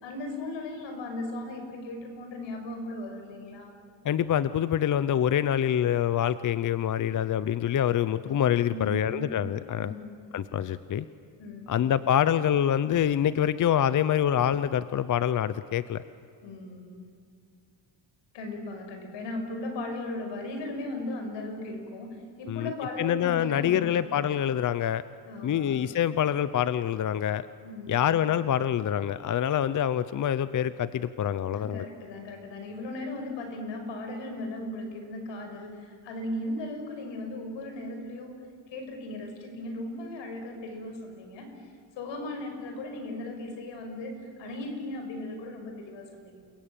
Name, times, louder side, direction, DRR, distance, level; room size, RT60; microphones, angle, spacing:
voice 1, 0.0-3.7 8.7-9.3 9.8-10.2 11.4-11.8 16.4-17.1 18.3-24.0 25.2-25.8 27.6-28.2 31.5-38.4 38.7-41.5 42.0-46.4, left 2 dB, 85° left, 5 dB, 6.2 m, -37 dB
voice 2, 4.0-9.9 10.3-11.1 11.7-16.0 22.5-22.7 23.0-25.0 25.4-27.4 27.9-31.8, left 10 dB, 45° left, 15 dB, 0.7 m, -26 dB
29.5 x 22.0 x 9.0 m, 2.3 s
cardioid pair, 125°, 43 cm